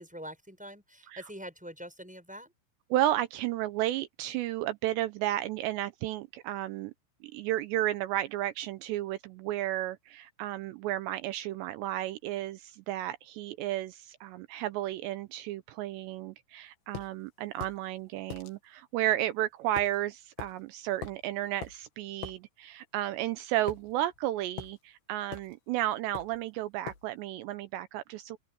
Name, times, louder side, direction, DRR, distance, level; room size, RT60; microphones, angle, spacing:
voice 1, 0.0-2.5, equal, ahead, 7.0 m, -44 dB
voice 2, 2.9-6.9 7.2-28.4, right 14 dB, 85° right, 2.5 m, -33 dB
sound 1, 16.9-17.1 17.6-17.8 18.3-18.5 19.8-20.0 20.4-20.5 21.0-21.3 21.6-21.8 22.2-22.4 23.7-24.2 24.6-24.8 25.3-25.6 26.1-26.4 26.9-27.1, left 8 dB, 60° left, 3.9 m, -42 dB
open air
omnidirectional pair, 5.8 m